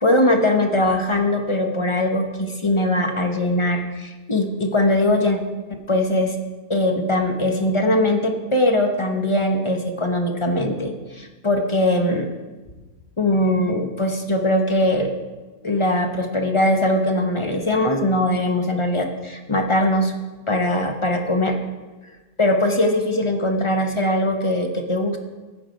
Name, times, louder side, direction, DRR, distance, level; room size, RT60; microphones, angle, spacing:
voice 1, 0.0-5.4 5.9-6.4 6.7-12.3 13.2-15.1 15.6-20.1 20.5-21.6 22.4-25.2, left 1 dB, 35° left, 4 dB, 0.5 m, -21 dB
16.5 x 5.5 x 5.1 m, 1.3 s
omnidirectional pair, 1.9 m